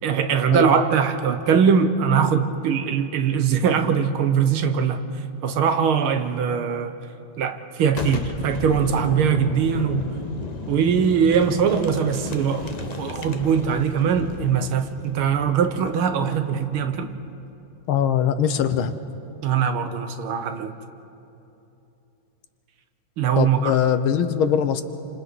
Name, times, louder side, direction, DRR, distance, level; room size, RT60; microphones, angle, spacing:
voice 1, 0.0-5.0 5.4-6.9 7.4-10.1 10.7-17.1 19.4-20.7 23.2-23.7, right 7 dB, 85° right, 8 dB, 1.9 m, -21 dB
Boom, 7.9-17.5, left 3 dB, 35° left, 0.6 m, -34 dB
voice 2, 17.9-18.9 23.4-24.8, left 9 dB, 80° left, 10 dB, 1.8 m, -21 dB
28.5 x 26.0 x 4.2 m, 2.9 s
omnidirectional pair, 2.2 m